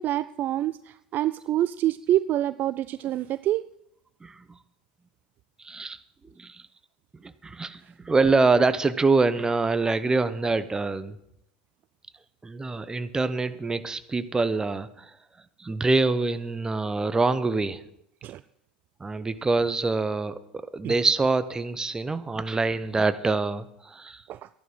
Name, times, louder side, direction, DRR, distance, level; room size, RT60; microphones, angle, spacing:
voice 1, 0.0-3.6 18.2-18.4 20.8-20.9 24.3-24.5, right 13 dB, 40° right, 15 dB, 0.4 m, -26 dB
voice 2, 4.2-4.6 5.6-6.0 6.4-6.6 7.1-11.2 12.4-15.1 15.6-17.8 19.0-24.2, right 3 dB, 15° right, 12 dB, 0.9 m, -25 dB
12.0 x 11.0 x 6.2 m, 0.78 s
hypercardioid pair, 85°, 5 cm